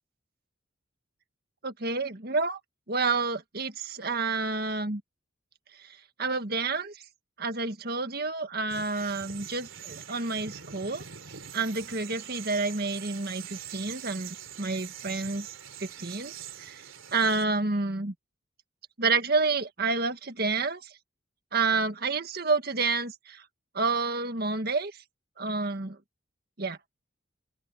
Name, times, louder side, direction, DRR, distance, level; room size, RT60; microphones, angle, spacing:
voice 1, 1.6-2.6 2.9-5.0 5.8-5.9 6.2-7.0 7.4-11.0 11.5-15.5 15.8-16.3 16.6-16.8 17.1-18.1 19.0-20.9 21.5-23.4 23.7-25.0 25.4-26.0 26.6-26.8, right 3 dB, 50° right, 1.8 m, -29 dB
sound 1, 8.7-17.4, right 9 dB, 80° right, 3.4 m, -43 dB
open air
head